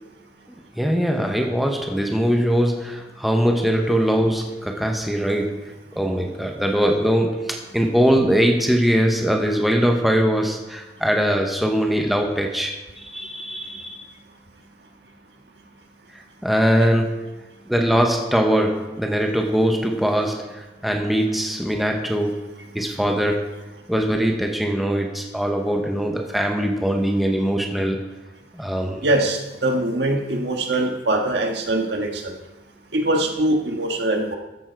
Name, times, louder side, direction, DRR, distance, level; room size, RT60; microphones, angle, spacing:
voice 1, 0.8-14.0 16.4-17.3 17.7-22.5 22.7-23.5 23.9-28.0 28.5-29.0, equal, ahead, 2 dB, 0.9 m, -21 dB
voice 2, 29.0-32.3 32.9-34.4, right 1 dB, 80° right, 2 dB, 1.6 m, -22 dB
13.5 x 7.2 x 4.6 m, 1.0 s
head